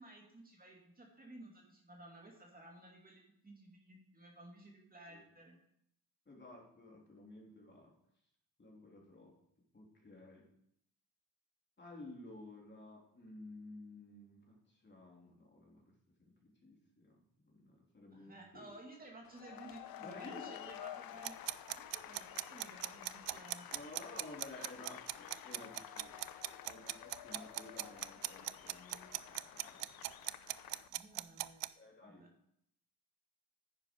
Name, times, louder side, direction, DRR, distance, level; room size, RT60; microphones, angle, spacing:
voice 1, 0.0-5.6 18.1-21.4 21.9-23.7 24.6-24.7 26.4-26.6 30.9-32.3, right 2 dB, 20° right, -1 dB, 2.3 m, -55 dB
voice 2, 6.2-7.9 8.6-9.3 9.7-10.5 11.8-18.7 20.0-20.6 23.3-23.4 23.7-26.2 26.6-30.1 31.7-32.3, left 2 dB, 25° left, -1 dB, 3.2 m, -54 dB
sound 1, 19.2-30.9, left 12 dB, 55° left, 0.7 m, -51 dB
sound 2, 21.2-31.7, right 20 dB, 85° right, 0.5 m, -40 dB
10.0 x 9.1 x 4.6 m, 0.72 s
cardioid pair, 100°, 41 cm